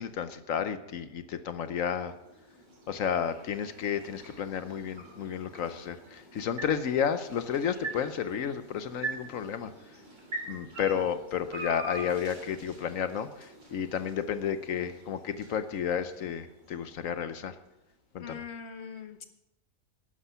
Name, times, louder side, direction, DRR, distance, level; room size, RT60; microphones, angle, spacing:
voice 1, 0.0-2.1 2.9-9.7 10.5-17.6 18.1-18.4, left 8 dB, 70° left, 11 dB, 1.1 m, -32 dB
sound 1, 1.5-17.7, right 2 dB, 55° right, 3.7 m, -44 dB
voice 2, 18.2-19.3, left 6 dB, 50° left, 8 dB, 1.4 m, -42 dB
11.5 x 11.5 x 5.6 m, 0.92 s
omnidirectional pair, 1.5 m